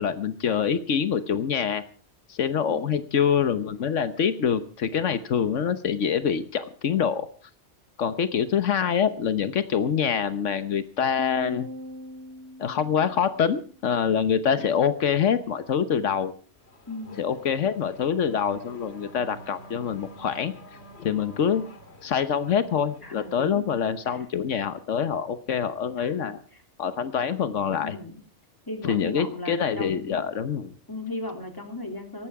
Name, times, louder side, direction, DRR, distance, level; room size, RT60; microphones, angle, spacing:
voice 1, 0.0-1.8 2.3-7.3 8.0-11.7 12.6-16.3 17.2-20.5 21.0-21.7 22.0-26.4 26.8-28.0 28.8-30.7, left 7 dB, 85° left, 12 dB, 1.3 m, -25 dB
voice 2, 2.7-3.0 16.9-17.3 23.0-23.8 24.1-24.2 26.0-26.1 26.5-26.6 27.8-28.2 28.7-30.2 30.9-32.3, left 2 dB, 15° left, 4 dB, 3.3 m, -37 dB
sound 1, 11.2-13.6, equal, 65° right, 1.3 m, -39 dB
Race car auto racing / Accelerating revving vroom, 16.5-23.8, left 1 dB, 60° left, 2.6 m, -48 dB
18.5 x 14.5 x 4.8 m, 0.41 s
omnidirectional pair, 1.2 m